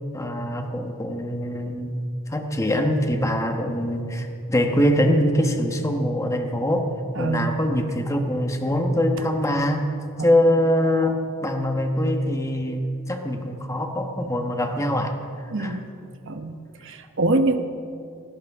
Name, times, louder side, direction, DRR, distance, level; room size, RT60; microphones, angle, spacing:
voice 1, 0.1-2.0 2.3-9.9 10.2-15.1 15.6-15.8, equal, 15° left, 4 dB, 1.1 m, -23 dB
voice 2, 7.1-7.5 10.2-10.3 15.5-15.9 16.3-16.6 16.8-17.6, right 2 dB, 60° right, 8 dB, 1.0 m, -24 dB
19.0 x 17.0 x 3.6 m, 2.5 s
head